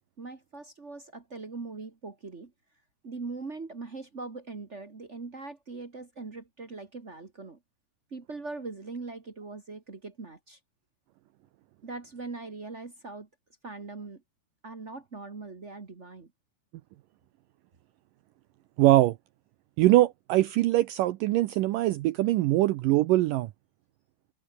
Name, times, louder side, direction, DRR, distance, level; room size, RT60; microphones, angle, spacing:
voice 1, 0.2-2.5 3.0-7.6 8.1-10.6 11.8-13.3 13.6-14.2 14.6-16.3, right 3 dB, 55° right, 0.7 m, -41 dB
voice 2, 18.8-19.2 19.8-23.5, right 16 dB, 80° right, 2.0 m, -22 dB
omnidirectional pair, 4.6 m